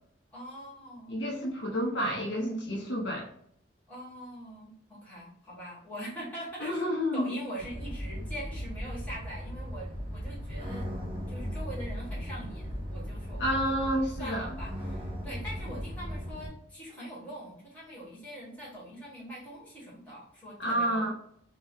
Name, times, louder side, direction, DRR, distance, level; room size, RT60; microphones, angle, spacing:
voice 1, 0.3-1.2 3.9-6.8 7.1-10.9 11.3-13.6 14.0-21.1, equal, 10° left, -6 dB, 1.3 m, -43 dB
voice 2, 1.1-3.3 6.6-7.4 13.4-14.5 20.6-21.1, equal, 65° left, 0 dB, 0.7 m, -30 dB
sound 1, 7.6-16.5, equal, 25° right, 0.8 m, -37 dB
2.7 x 2.2 x 3.4 m, 0.67 s
head